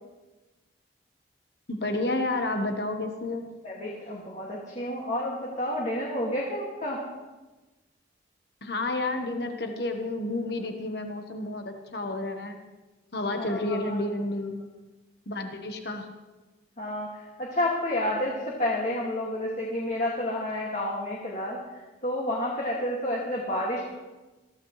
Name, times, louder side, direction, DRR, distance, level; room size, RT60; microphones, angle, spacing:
voice 1, 1.7-3.5 8.6-12.6 13.1-14.6 15.3-16.1, left 2 dB, 55° left, 5 dB, 1.3 m, -30 dB
voice 2, 3.6-7.0 13.4-13.8 16.8-17.1 17.4-21.6 22.0-23.8, left 1 dB, 40° left, -4 dB, 2.3 m, -30 dB
21.0 x 14.5 x 3.3 m, 1.2 s
head